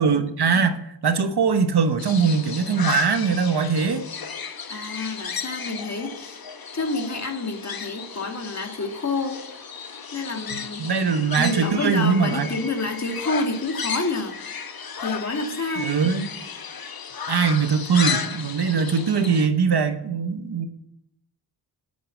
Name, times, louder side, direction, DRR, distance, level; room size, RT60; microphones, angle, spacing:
voice 1, 0.0-4.1 10.5-12.5 15.8-16.3 17.3-20.7, right 5 dB, 60° right, 9 dB, 1.1 m, -22 dB
sound 1, 2.0-19.5, left 6 dB, 55° left, 1.1 m, -34 dB
voice 2, 4.7-6.4 6.7-9.4 10.1-10.9 11.4-14.4 15.0-15.9, left 2 dB, 35° left, 5 dB, 1.9 m, -28 dB
9.6 x 8.4 x 8.2 m, 0.78 s
wide cardioid pair, 90°, 44 cm